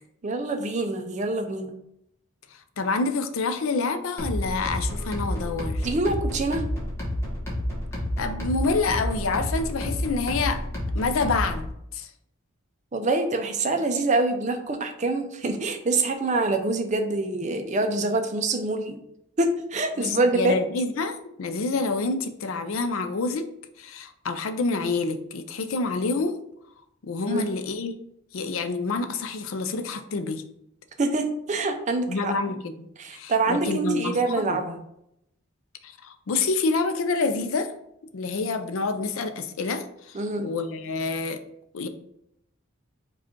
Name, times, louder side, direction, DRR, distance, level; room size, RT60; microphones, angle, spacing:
voice 1, 0.2-1.7 5.8-6.6 12.9-19.0 19.4-20.6 27.3-27.5 31.0-32.3 33.0-34.8 40.1-40.5, right 3 dB, 35° right, 6 dB, 0.5 m, -25 dB
voice 2, 2.8-5.9 8.2-10.6 10.9-12.1 20.0-23.5 23.8-26.4 27.0-27.9 28.3-30.4 32.1-32.7 33.1-34.6 35.8-37.7 38.1-41.4 41.7-41.9, left 3 dB, 70° left, 9 dB, 0.5 m, -27 dB
sound 1, 4.2-11.7, left 1 dB, 10° left, 1.0 m, -30 dB
4.8 x 2.4 x 4.4 m, 0.76 s
head